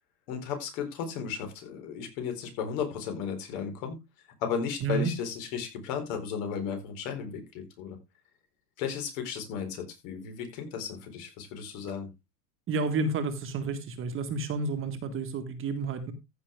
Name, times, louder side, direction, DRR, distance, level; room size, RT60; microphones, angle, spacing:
voice 1, 0.3-3.9 4.4-8.0 8.8-12.1, left 7 dB, 60° left, 5 dB, 4.6 m, -34 dB
voice 2, 12.7-16.1, right 4 dB, 25° right, 8 dB, 1.6 m, -30 dB
15.0 x 6.6 x 3.5 m, 0.23 s
supercardioid pair, 140°, 46 cm